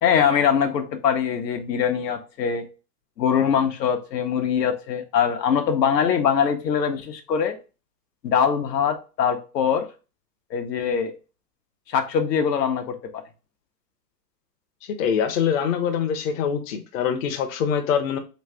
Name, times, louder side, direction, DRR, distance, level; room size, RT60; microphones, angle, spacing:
voice 1, 0.0-2.6 3.2-7.6 8.2-9.8 10.5-11.1 11.9-13.2, left 7 dB, 80° left, 5 dB, 1.0 m, -22 dB
voice 2, 15.0-18.2, left 7 dB, 55° left, 5 dB, 0.8 m, -24 dB
3.5 x 3.2 x 3.2 m, 0.32 s
hypercardioid pair, 130°, 49 cm